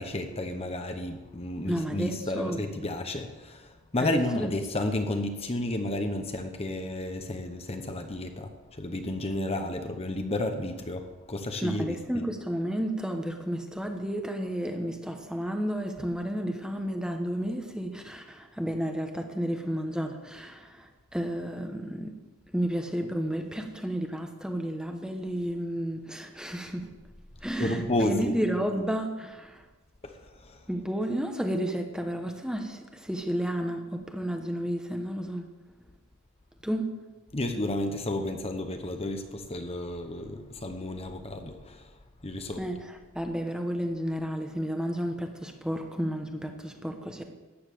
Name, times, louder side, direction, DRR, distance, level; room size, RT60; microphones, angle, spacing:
voice 1, 0.0-12.3 27.6-28.3 30.0-30.6 37.3-41.9 42.2-42.6, left 1 dB, 25° left, 6 dB, 1.0 m, -32 dB
voice 2, 1.7-2.6 4.0-4.5 11.6-22.2 22.5-26.9 27.4-29.6 30.7-35.4 36.6-36.9 42.6-47.2, equal, 5° right, 4 dB, 1.1 m, -32 dB
14.0 x 9.6 x 6.9 m, 1.2 s
head